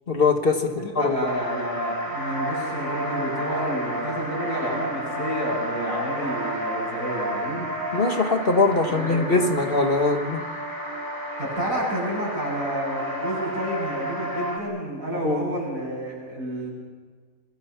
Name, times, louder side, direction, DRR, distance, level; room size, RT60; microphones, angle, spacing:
voice 1, 0.1-1.2 7.9-10.5 15.2-15.6, left 3 dB, 45° left, 5 dB, 1.8 m, -22 dB
voice 2, 0.8-7.7 8.9-9.4 11.4-16.7, right 1 dB, 85° right, -3 dB, 8.5 m, -30 dB
sound 1, 1.3-14.6, equal, 15° right, 3.7 m, -31 dB
28.0 x 22.5 x 5.9 m, 1.5 s
omnidirectional pair, 1.4 m